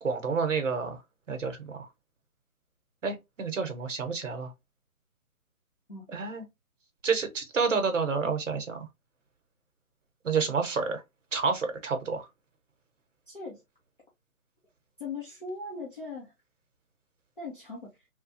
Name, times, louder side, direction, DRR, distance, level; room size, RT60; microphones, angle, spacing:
voice 1, 0.0-1.0 1.3-1.9 3.0-4.5 6.1-6.4 7.0-8.9 10.2-11.0 11.3-12.3, right 5 dB, 55° right, 0.9 m, -29 dB
voice 2, 13.3-13.6 15.0-16.3 17.4-18.1, left 3 dB, 35° left, 0.6 m, -39 dB
3.0 x 2.2 x 2.6 m
hypercardioid pair, 180°, 44 cm